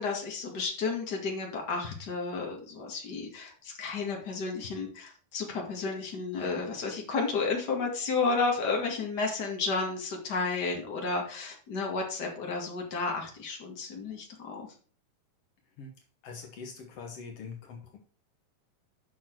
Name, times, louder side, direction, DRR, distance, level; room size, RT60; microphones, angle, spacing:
voice 1, 0.0-14.7, left 4 dB, 35° left, 1 dB, 1.7 m, -32 dB
voice 2, 16.2-18.0, left 5 dB, 85° left, 3 dB, 1.3 m, -43 dB
8.6 x 6.0 x 4.6 m, 0.41 s
omnidirectional pair, 4.5 m